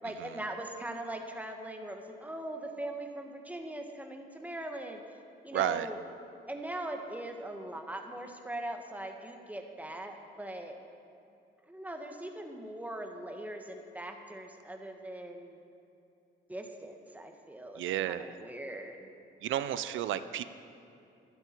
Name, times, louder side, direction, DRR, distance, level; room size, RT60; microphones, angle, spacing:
voice 1, 0.0-5.0 5.4-6.0 6.5-10.8 11.7-15.6 16.5-19.1, right 1 dB, 10° right, 3 dB, 1.4 m, -41 dB
voice 2, 5.5-5.9 17.8-18.3 19.4-20.4, right 11 dB, 80° right, 13 dB, 0.6 m, -32 dB
13.5 x 12.0 x 4.5 m, 2.7 s
cardioid pair, 90°, 20 cm